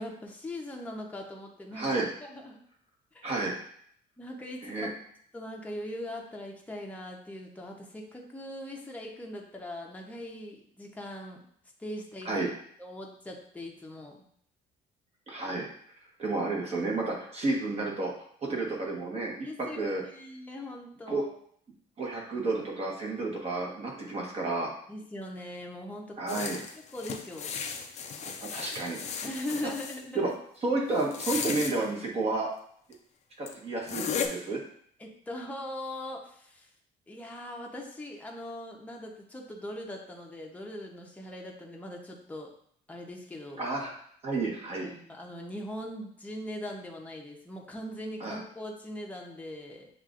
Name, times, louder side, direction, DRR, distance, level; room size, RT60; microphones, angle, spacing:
voice 1, 0.0-2.6 3.1-3.3 4.2-4.9 5.3-11.4 11.8-12.5 12.8-14.2 19.4-21.3 24.9-26.4 26.9-27.6 29.2-30.3 35.0-36.7 37.1-42.5 42.9-43.7 44.7-49.9, left 1 dB, 10° left, 0 dB, 0.8 m, -40 dB
voice 2, 1.7-2.1 3.2-3.5 4.6-4.9 12.2-12.5 15.3-15.7 16.2-18.1 18.4-20.0 21.1-21.2 22.0-24.7 26.2-26.6 28.2-29.0 29.6-29.7 30.1-30.3 30.6-32.5 33.4-34.6 43.6-43.9 44.2-44.9 48.2-48.4, right 3 dB, 40° right, -1 dB, 1.3 m, -31 dB
sound 1, 26.3-30.0 31.0-31.7 32.9-33.0 33.5-33.6 33.9-34.3, left 6 dB, 40° left, 0.5 m, -35 dB
7.2 x 2.5 x 2.5 m, 0.64 s
cardioid pair, 110°, 17 cm